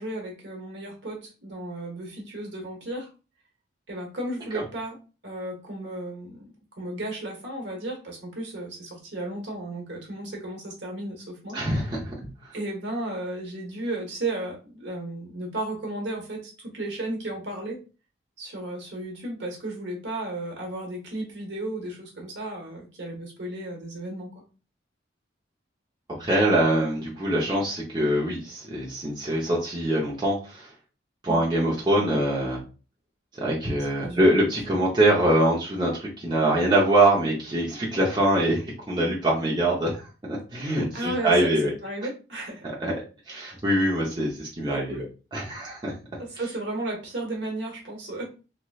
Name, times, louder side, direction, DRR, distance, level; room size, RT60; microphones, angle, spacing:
voice 1, 0.0-3.1 3.9-5.0 5.2-6.5 6.8-11.6 12.5-17.8 18.4-24.4 31.3-31.4 34.0-34.3 40.9-42.6 44.7-45.1 46.2-48.2, right 1 dB, 65° right, 0 dB, 1.1 m, -34 dB
voice 2, 11.5-12.1 26.2-30.7 31.2-32.6 33.4-41.7 42.8-42.9 43.3-45.0 45.3-45.9, right 1 dB, 20° right, -5 dB, 0.7 m, -24 dB
3.1 x 2.9 x 2.3 m, 0.33 s
head